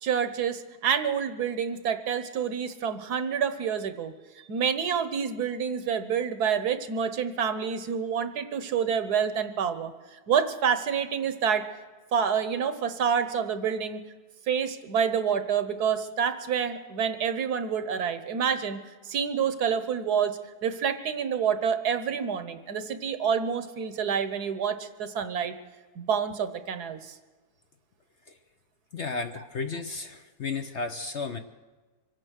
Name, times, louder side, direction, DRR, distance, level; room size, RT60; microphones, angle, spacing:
voice 1, 0.0-4.1 4.5-11.6 12.1-14.0 14.5-18.8 19.0-25.5 26.0-27.2, right 7 dB, 70° right, 10 dB, 1.4 m, -28 dB
voice 2, 28.9-31.4, left 4 dB, 55° left, 7 dB, 0.9 m, -33 dB
25.0 x 9.0 x 6.4 m, 1.3 s
omnidirectional pair, 1.8 m